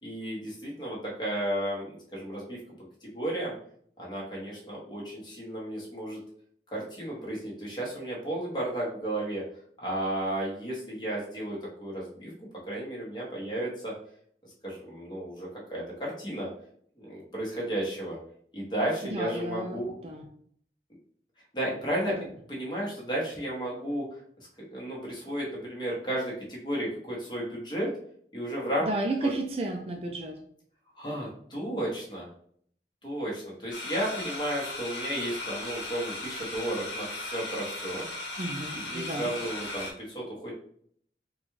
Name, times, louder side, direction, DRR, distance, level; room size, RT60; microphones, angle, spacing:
voice 1, 0.0-2.6 3.0-3.5 4.0-6.2 6.7-9.4 9.8-12.3 12.7-13.9 14.6-16.5 17.0-18.2 18.5-19.9 21.5-22.1 22.5-24.0 24.6-27.9 28.3-28.9 29.2-29.3 31.0-32.3 33.0-38.0 38.7-40.5, right 1 dB, 25° left, -4 dB, 1.0 m, -33 dB
voice 2, 19.1-20.2 22.1-22.3 28.8-30.3 38.4-39.3, right 2 dB, 35° right, 2 dB, 0.4 m, -32 dB
sound 1, 33.7-39.9, left 2 dB, 90° left, 0.9 m, -37 dB
4.1 x 2.3 x 3.0 m, 0.63 s
head